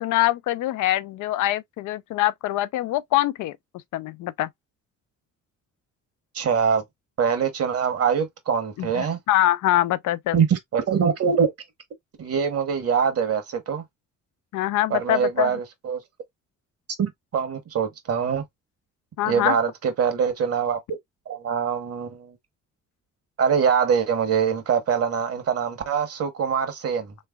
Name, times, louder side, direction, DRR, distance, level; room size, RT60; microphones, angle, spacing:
voice 1, 0.0-3.6 3.9-4.5 8.8-10.4 14.5-15.5 19.2-19.5, left 15 dB, 80° left, 0.5 m, -24 dB
voice 2, 6.3-6.8 7.2-9.2 10.3-11.5 12.2-13.8 14.9-16.0 17.0-18.4 19.2-21.0 21.3-22.4 23.4-27.1, right 7 dB, 50° right, 1.2 m, -23 dB
3.3 x 3.2 x 2.3 m
cardioid pair, 90°, 30 cm